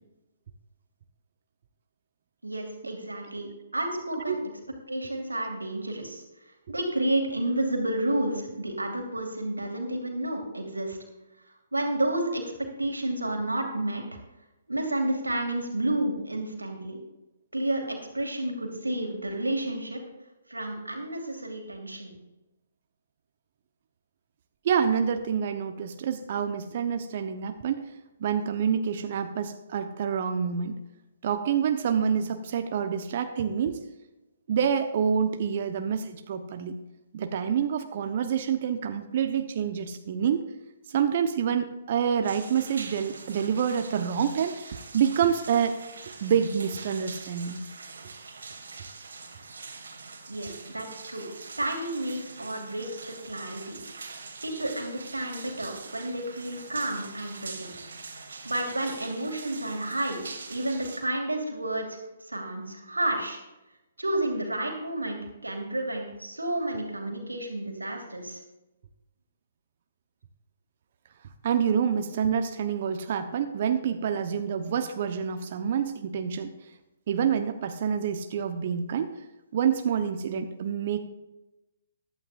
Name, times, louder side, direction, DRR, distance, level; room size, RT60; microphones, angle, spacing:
voice 1, 2.4-4.4 4.9-6.2 6.7-11.0 11.7-14.0 14.7-17.0 17.5-20.0 20.5-22.1 50.3-51.3 51.6-53.8 54.4-57.7 58.4-60.2 60.5-62.0 62.3-63.4 64.0-68.4, right 1 dB, 85° right, 2 dB, 2.4 m, -31 dB
voice 2, 24.6-27.8 28.2-30.8 31.2-33.8 34.5-36.8 37.1-40.4 40.9-45.8 46.2-47.6 71.4-76.5 77.1-79.1 79.5-81.0, right 7 dB, 45° right, 7 dB, 0.9 m, -27 dB
sound 1, 42.2-61.0, right 4 dB, 65° right, 2.0 m, -44 dB
15.5 x 11.5 x 2.5 m, 1.0 s
figure-of-eight pair, 130°, 0 cm